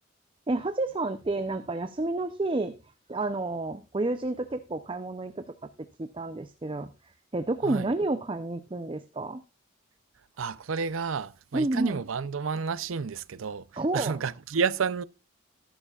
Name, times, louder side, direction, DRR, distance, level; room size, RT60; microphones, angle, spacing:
voice 1, 0.5-2.7 3.1-9.4 11.5-12.0 13.8-14.2, right 2 dB, 25° right, 0.5 m, -30 dB
voice 2, 10.4-13.7 13.9-15.0, right 5 dB, 80° right, 0.5 m, -30 dB
12.5 x 11.0 x 2.4 m
head